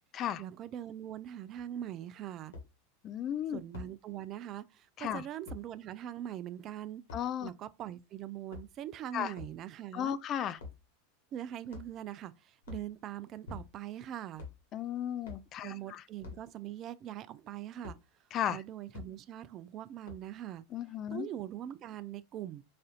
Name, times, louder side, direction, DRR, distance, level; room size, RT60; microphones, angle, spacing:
voice 1, 0.4-2.5 3.5-7.0 7.4-10.2 11.3-14.5 15.6-18.0 18.5-20.6 21.1-22.6, right 11 dB, 40° right, 0.3 m, -42 dB
sound 1, 1.5-1.6 2.5-2.7 3.7-3.9 5.5-5.6 7.1-7.3 8.3-8.9 9.3-9.6 10.6-10.8 11.7-12.1 12.6-12.9 13.4-13.9 14.3-14.6 15.2-15.5 16.2-16.5 17.8-18.0 18.9-19.1 20.0-20.4, left 4 dB, 75° left, 1.2 m, -46 dB
voice 2, 3.0-3.6 5.0-5.2 7.1-7.5 9.1-9.3 9.9-10.6 14.7-16.0 18.3-18.6 20.7-21.3, left 10 dB, 40° left, 0.3 m, -35 dB
4.1 x 2.5 x 2.4 m
hypercardioid pair, 90°, 0 cm